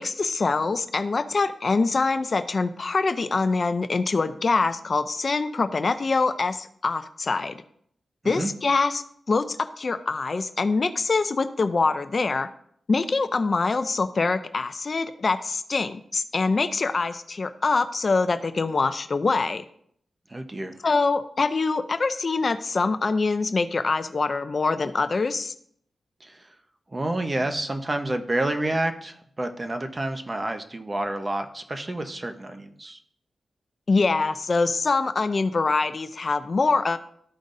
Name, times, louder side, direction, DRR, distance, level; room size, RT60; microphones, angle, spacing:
voice 1, 0.0-7.5 8.2-12.5 12.9-19.6 20.8-25.5 33.9-37.0, left 4 dB, 50° left, 11 dB, 0.5 m, -24 dB
voice 2, 20.3-20.8 26.2-26.4 26.9-33.0, right 1 dB, 30° right, 6 dB, 0.9 m, -29 dB
13.5 x 5.1 x 2.6 m, 0.66 s
cardioid pair, 70°, 0 cm